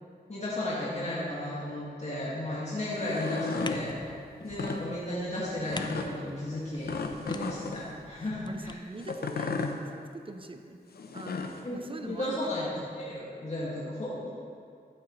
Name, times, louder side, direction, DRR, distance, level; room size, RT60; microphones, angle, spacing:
voice 1, 0.3-4.0 4.4-7.0 7.3-8.8 11.6-14.3, left 1 dB, 40° left, -8 dB, 2.0 m, -34 dB
sound 1, 2.9-3.8 4.5-4.8 5.7-6.1 6.9-7.8 9.0-9.7 10.9-11.6, left 4 dB, 70° left, 0.7 m, -34 dB
sound 2, 3.5-8.8, left 3 dB, 25° left, 0.4 m, -44 dB
voice 2, 8.5-10.8 11.1-12.5, right 2 dB, 30° right, 6 dB, 0.7 m, -43 dB
12.5 x 7.5 x 3.1 m, 2.5 s
cardioid pair, 70°, 17 cm